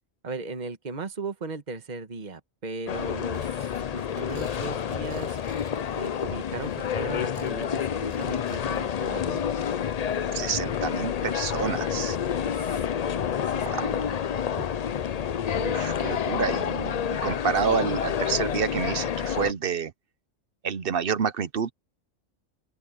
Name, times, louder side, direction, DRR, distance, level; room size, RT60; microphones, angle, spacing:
voice 1, 0.2-5.4 5.9-9.4 12.1-12.8 13.4-14.2 14.5-14.7, right 3 dB, 35° right, 1.5 m, -37 dB
sound 1, 2.9-19.5, left 8 dB, 75° left, 0.3 m, -29 dB
sound 2, 3.3-6.9 7.2-9.1 9.6-9.9 10.4-10.5 10.7-10.8, right 2 dB, 70° right, 4.5 m, -54 dB
voice 2, 10.3-12.2 13.6-13.8 15.5-19.9 20.6-21.7, right 7 dB, 50° right, 0.8 m, -28 dB
open air
omnidirectional pair, 1.4 m